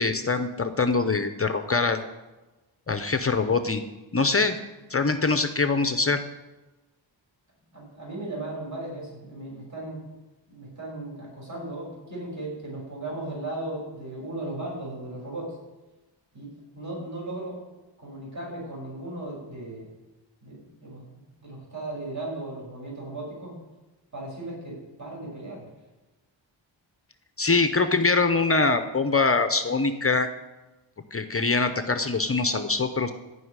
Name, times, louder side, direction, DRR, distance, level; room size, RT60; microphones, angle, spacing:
voice 1, 0.0-2.0 2.9-3.8 4.1-4.6 4.9-6.2 27.4-30.3 31.1-33.1, left 3 dB, 30° left, 9 dB, 0.8 m, -23 dB
voice 2, 7.7-10.0 10.5-15.6 16.3-17.6 18.0-19.9 20.4-23.6 24.1-25.7, right 2 dB, 40° right, -3 dB, 5.8 m, -36 dB
14.5 x 5.6 x 9.6 m, 1.1 s
wide cardioid pair, 145°, 47 cm